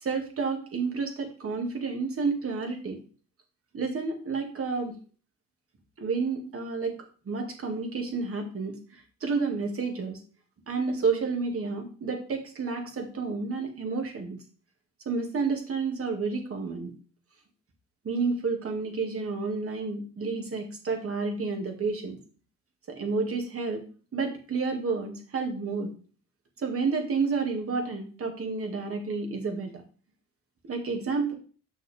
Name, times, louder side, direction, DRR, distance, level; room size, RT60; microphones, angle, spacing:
voice 1, 0.0-3.0 3.7-4.9 6.0-10.2 10.7-14.4 15.1-16.9 18.0-22.2 22.9-23.8 24.1-25.9 26.6-29.8 30.6-31.3, right 4 dB, 50° right, 3 dB, 2.2 m, -30 dB
6.7 x 6.3 x 3.6 m, 0.39 s
cardioid pair, 90°, 30 cm